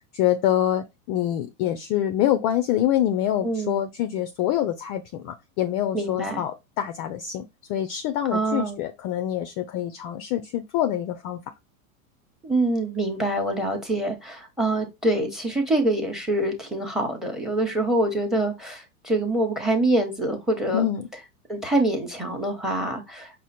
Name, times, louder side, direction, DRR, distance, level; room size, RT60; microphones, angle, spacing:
voice 1, 0.1-11.4 20.7-21.1, left 11 dB, 35° left, 0.4 m, -25 dB
voice 2, 3.4-3.8 5.9-6.4 8.3-8.8 12.4-20.9 21.5-23.4, right 1 dB, ahead, 1.0 m, -25 dB
4.9 x 2.0 x 4.2 m
hypercardioid pair, 115°, 44 cm